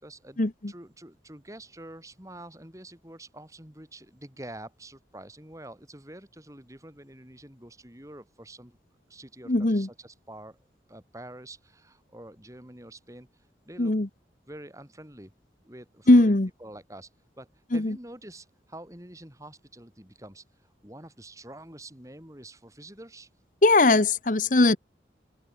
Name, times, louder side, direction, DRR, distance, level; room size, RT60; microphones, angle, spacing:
voice 1, 0.0-8.8 9.1-10.6 10.9-13.3 13.6-13.9 14.5-15.3 15.6-17.1 17.4-23.3, right 1 dB, 20° right, 4.2 m, -46 dB
voice 2, 9.5-9.9 13.8-14.1 16.1-16.5 17.7-17.9 23.6-24.8, left 2 dB, 45° left, 1.1 m, -19 dB
open air
head